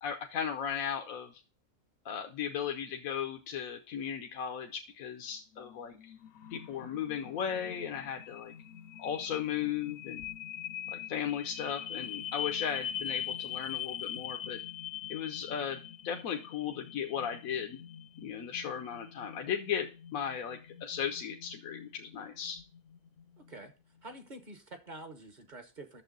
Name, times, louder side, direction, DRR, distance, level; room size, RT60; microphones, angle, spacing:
voice 1, 0.0-1.4 2.0-6.1 6.5-8.5 9.0-10.2 10.9-14.6 15.1-17.8 18.2-22.6, left 8 dB, 80° left, 4 dB, 1.2 m, -36 dB
sound 1, 5.5-23.6, left 9 dB, 65° left, 0.8 m, -43 dB
voice 2, 23.4-23.7 24.0-26.0, right 2 dB, 40° right, 7 dB, 1.0 m, -47 dB
9.2 x 6.9 x 3.9 m, 0.33 s
omnidirectional pair, 1.4 m